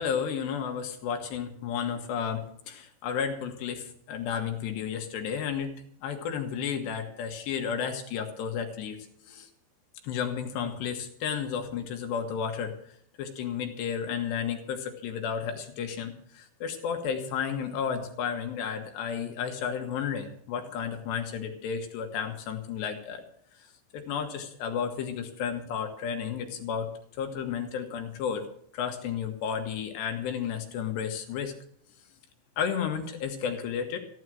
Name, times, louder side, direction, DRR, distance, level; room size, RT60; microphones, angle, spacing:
voice 1, 0.0-5.7 6.0-9.0 9.2-9.5 10.0-12.7 13.2-23.2 23.6-23.7 23.9-26.9 27.2-28.5 28.7-31.5 32.6-34.0, left 7 dB, 70° left, 4 dB, 3.2 m, -32 dB
15.5 x 11.0 x 6.2 m, 0.67 s
omnidirectional pair, 5.4 m